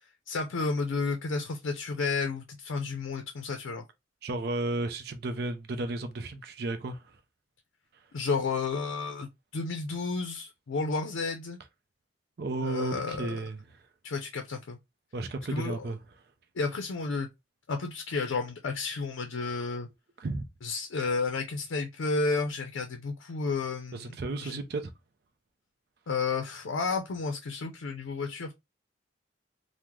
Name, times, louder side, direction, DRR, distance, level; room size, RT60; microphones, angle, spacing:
voice 1, 0.3-3.8 8.1-11.6 12.6-13.4 14.0-14.8 15.5-15.9 16.6-17.3 17.7-19.9 20.6-24.6 26.1-28.5, left 4 dB, 85° left, 0.5 m, -32 dB
voice 2, 4.2-7.2 12.4-13.8 15.1-16.0 20.2-20.5 23.9-24.9, right 2 dB, 55° right, 0.4 m, -33 dB
3.0 x 2.1 x 3.5 m
head